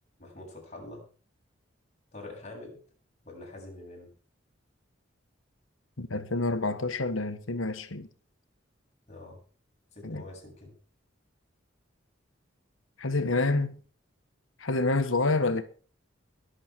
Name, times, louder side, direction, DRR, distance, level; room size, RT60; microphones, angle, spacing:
voice 1, 0.2-1.0 2.1-2.8 3.2-4.1 9.1-9.4 9.9-10.7, left 2 dB, 35° left, 7.9 m, -45 dB
voice 2, 6.0-8.1 10.0-10.2 13.0-13.8 14.6-15.6, left 2 dB, 85° left, 1.6 m, -28 dB
22.5 x 8.4 x 4.7 m
head